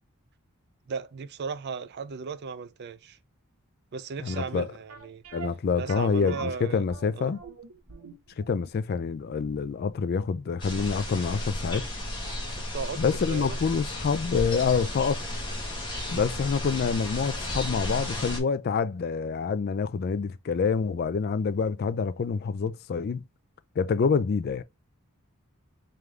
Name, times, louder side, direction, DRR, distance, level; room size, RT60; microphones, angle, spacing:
voice 1, 0.9-3.2 3.9-5.2 5.7-6.9 7.2-7.3 12.6-13.6 16.1-16.2, right 5 dB, 50° right, 0.4 m, -36 dB
voice 2, 4.2-4.7 5.3-7.4 8.4-11.9 13.0-15.3 16.1-23.2 23.8-24.6, left 5 dB, 45° left, 0.3 m, -27 dB
sound 1, 4.3-11.1 11.4-11.5 12.1-12.2 12.5-12.6, right 4 dB, 90° right, 1.1 m, -45 dB
sound 2, 10.6-18.4, left 1 dB, 20° left, 1.3 m, -33 dB
3.6 x 3.5 x 3.2 m
head